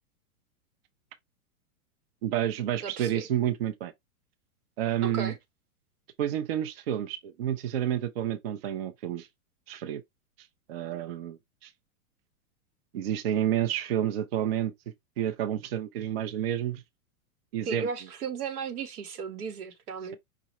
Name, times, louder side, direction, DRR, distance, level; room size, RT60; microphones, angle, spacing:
voice 1, 2.2-3.9 4.8-5.3 6.2-9.3 9.7-10.0 10.7-11.7 12.9-14.7 15.2-16.8 17.5-17.9, right 11 dB, 45° right, 0.5 m, -29 dB
voice 2, 2.8-3.3 5.0-5.4 17.6-20.2, right 6 dB, 85° right, 1.2 m, -35 dB
4.9 x 2.1 x 4.1 m
supercardioid pair, 170°, 43 cm